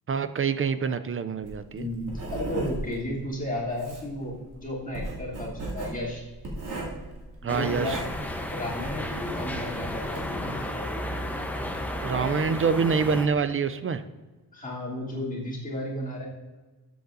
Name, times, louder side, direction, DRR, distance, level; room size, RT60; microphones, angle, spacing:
voice 1, 0.1-1.8 7.4-8.0 12.0-14.0, right 5 dB, 35° right, 12 dB, 0.4 m, -26 dB
Writing, 1.4-10.4, right 2 dB, 50° right, 2.6 m, -37 dB
voice 2, 1.7-2.1 2.3-6.2 7.4-8.0 8.5-11.1 14.5-16.3, left 1 dB, 20° left, -6 dB, 2.9 m, -34 dB
sound 1, 7.5-13.3, left 1 dB, 5° left, 0.8 m, -33 dB
12.5 x 8.0 x 2.6 m, 1.2 s
cardioid pair, 120°, 39 cm